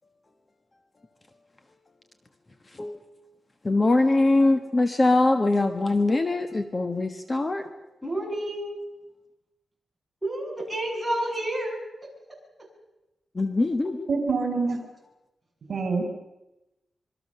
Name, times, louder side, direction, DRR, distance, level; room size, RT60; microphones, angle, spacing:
voice 1, 3.6-7.6 13.4-14.1, left 2 dB, 25° left, 8 dB, 1.3 m, -22 dB
voice 2, 8.0-8.8 10.2-11.8, right 1 dB, ahead, -2 dB, 7.5 m, -29 dB
voice 3, 14.1-14.8 15.7-16.0, right 4 dB, 55° right, 5 dB, 4.3 m, -25 dB
26.0 x 24.0 x 6.8 m, 0.99 s
wide cardioid pair, 155°, 0 cm